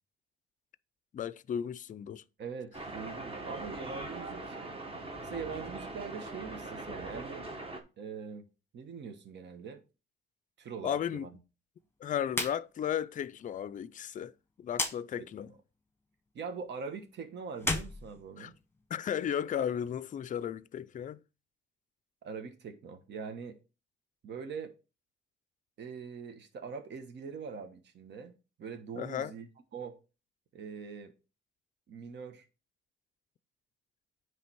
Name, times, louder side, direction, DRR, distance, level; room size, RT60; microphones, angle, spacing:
voice 1, 1.1-2.2 10.8-11.3 12.0-14.3 14.6-15.5 18.4-18.5 18.9-21.2 29.0-29.3, left 9 dB, 40° left, 0.4 m, -34 dB
voice 2, 2.4-4.6 5.2-7.5 8.0-8.5 8.7-9.8 10.6-11.3 15.2-15.6 16.3-18.5 22.2-23.6 24.2-24.7 25.8-28.3 28.6-30.0 30.5-31.1 31.9-32.4, right 5 dB, 60° right, 1.2 m, -43 dB
sound 1, 2.7-7.8, right 2 dB, 30° right, 1.3 m, -41 dB
sound 2, 12.3-12.6 12.9-13.0 14.7-15.0 17.5-18.8, left 2 dB, 10° left, 1.2 m, -33 dB
9.5 x 3.3 x 4.6 m
cardioid pair, 90°, 20 cm